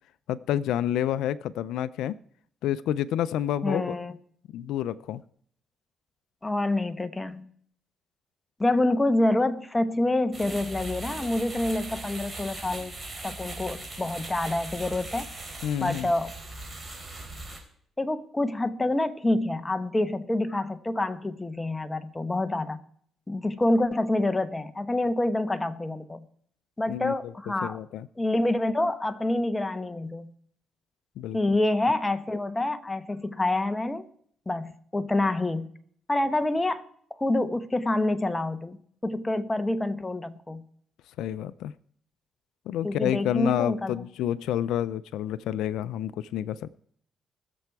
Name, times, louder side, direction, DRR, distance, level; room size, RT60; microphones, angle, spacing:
voice 1, 0.3-2.2 2.6-3.9 4.5-5.2 15.6-16.1 26.9-27.3 27.6-28.1 31.2-31.4 41.2-41.7 42.7-46.8, left 11 dB, 85° left, 13 dB, 0.4 m, -29 dB
voice 2, 3.6-4.2 6.4-7.5 8.6-12.9 13.2-15.3 15.8-16.3 18.0-22.8 23.3-26.3 26.8-27.8 28.2-30.3 31.3-34.1 34.5-35.7 36.1-36.8 37.1-40.7 42.8-43.9, left 2 dB, 15° left, 10 dB, 1.0 m, -27 dB
sound 1, 10.3-17.6, right 2 dB, 25° right, 3.9 m, -39 dB
20.5 x 6.9 x 4.7 m, 0.62 s
cardioid pair, 90°, 0 cm